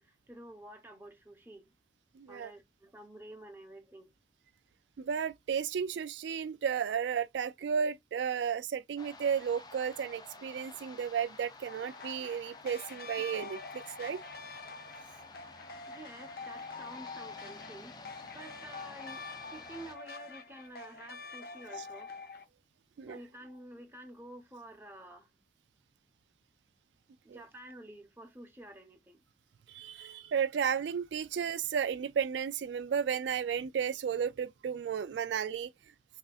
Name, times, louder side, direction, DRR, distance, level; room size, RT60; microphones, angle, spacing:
voice 1, 0.0-1.7 2.3-4.1 15.9-19.2 19.5-22.1 23.1-25.3 27.2-29.2, right 1 dB, 10° right, 0.9 m, -50 dB
voice 2, 2.2-2.5 5.0-14.2 21.8-21.9 23.0-23.2 27.3-27.4 29.7-35.7, right 7 dB, 80° right, 0.3 m, -33 dB
sound 1, 9.0-20.0, left 3 dB, 20° left, 0.5 m, -52 dB
sound 2, 11.7-22.4, left 4 dB, 55° left, 0.8 m, -46 dB
5.5 x 2.7 x 2.4 m
head